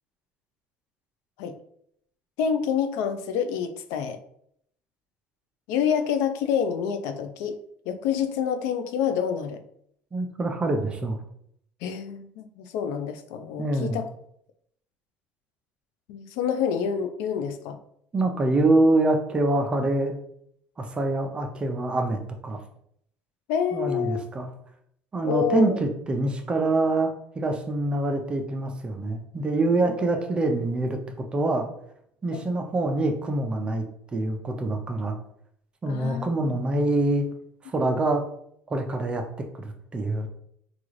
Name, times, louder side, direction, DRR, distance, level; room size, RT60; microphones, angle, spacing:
voice 1, 2.4-4.2 5.7-7.6 7.9-9.6 11.8-14.1 16.1-17.8 23.5-24.2 25.2-25.8 32.3-32.4 35.9-36.5 37.8-38.0, left 7 dB, 80° left, 8 dB, 0.4 m, -27 dB
voice 2, 10.1-11.2 13.6-14.0 18.1-20.2 20.8-22.6 23.7-24.5 25.1-31.7 32.2-33.8 34.1-35.2 35.8-37.3 37.7-38.2 38.7-39.2 39.5-40.3, right 2 dB, 20° right, 4 dB, 0.5 m, -25 dB
3.7 x 2.4 x 3.1 m, 0.70 s
cardioid pair, 130°, 5 cm